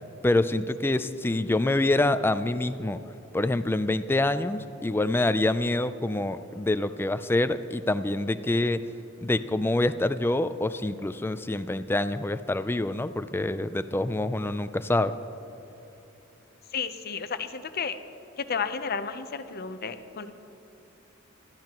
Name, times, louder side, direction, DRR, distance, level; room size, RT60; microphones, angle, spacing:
voice 1, 0.2-3.0 3.3-8.8 9.2-15.1, left 2 dB, 10° left, 12 dB, 0.4 m, -26 dB
voice 2, 16.7-18.0 18.4-20.3, left 6 dB, 50° left, 10 dB, 0.7 m, -32 dB
20.0 x 13.5 x 3.0 m, 3.0 s
head